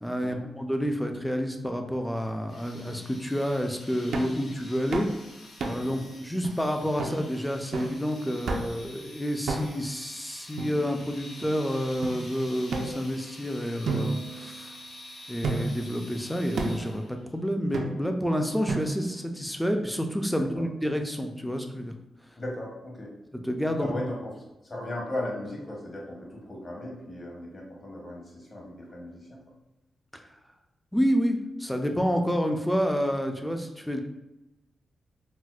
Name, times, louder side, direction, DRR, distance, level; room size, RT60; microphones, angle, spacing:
voice 1, 0.0-5.1 5.6-14.8 15.3-21.9 23.4-23.9 30.1-30.2 30.9-34.0, equal, 5° left, 4 dB, 0.3 m, -29 dB
sound 1, 2.5-17.2, left 1 dB, 80° left, 1.1 m, -48 dB
sound 2, 4.1-4.4 4.9-5.2 5.6-6.0 6.4-6.5 7.0-7.2 7.7-8.0 8.5-8.8 9.5-9.9 10.6-11.3 12.0-12.1 12.7-13.4 13.9-14.9 15.4-15.9 16.6-16.9 17.7-18.2 18.7-19.2, right 3 dB, 80° right, 0.4 m, -32 dB
voice 2, 20.3-20.7 22.4-23.1 23.8-24.3 24.6-29.4, left 1 dB, 40° left, -2 dB, 0.9 m, -37 dB
4.1 x 2.1 x 2.3 m, 0.98 s
cardioid pair, 105°, 0 cm